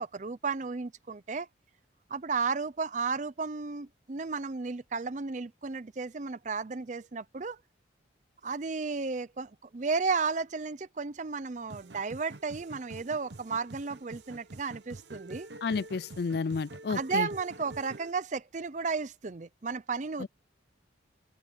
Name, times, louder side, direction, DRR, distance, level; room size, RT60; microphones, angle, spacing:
voice 1, 0.0-1.5 2.1-7.6 8.4-15.5 16.9-20.3, right 4 dB, 40° right, 0.5 m, -33 dB
sound 1, 11.7-18.1, right 2 dB, 65° right, 0.9 m, -47 dB
voice 2, 15.6-17.3 20.2-20.3, left 4 dB, 55° left, 0.4 m, -31 dB
head